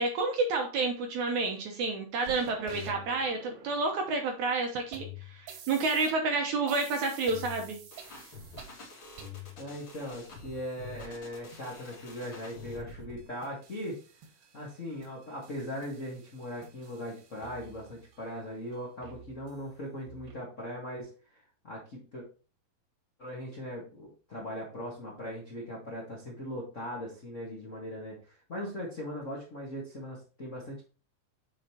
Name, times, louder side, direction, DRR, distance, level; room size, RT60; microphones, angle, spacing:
voice 1, 0.0-5.0 5.3-7.8, right 3 dB, 70° right, 2 dB, 1.9 m, -29 dB
sound 1, 2.2-6.2 6.7-8.8 9.2-9.7 10.9-11.0 11.5-11.6 12.1-12.2 12.7-12.8 13.2-14.7 15.0-18.2 18.7-18.8 19.0-19.6 20.1-20.3, right 1 dB, 85° right, 3.3 m, -48 dB
sound 2, 7.9-13.2, left 2 dB, 40° left, 2.3 m, -48 dB
voice 2, 9.6-14.0 14.5-22.2 23.2-30.8, equal, 75° left, -4 dB, 0.7 m, -39 dB
8.6 x 5.1 x 2.9 m, 0.36 s
omnidirectional pair, 4.4 m